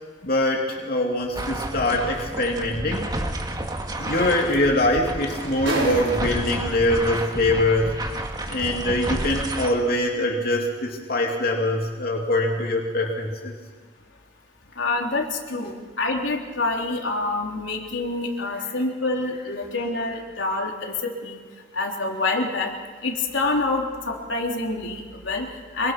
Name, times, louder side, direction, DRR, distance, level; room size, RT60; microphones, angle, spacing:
voice 1, 0.2-3.1 4.0-13.5, left 1 dB, 50° left, -1 dB, 2.8 m, -23 dB
sound 1, 1.4-9.7, right 1 dB, 20° right, 2.0 m, -31 dB
sound 2, 2.3-2.4 4.1-4.2 4.5-6.7 7.7-7.8, right 2 dB, 85° right, 5.5 m, -31 dB
voice 2, 14.8-21.4 21.7-22.7 23.0-25.9, left 2 dB, 75° left, 0 dB, 3.5 m, -27 dB
26.0 x 24.0 x 6.0 m, 1.5 s
head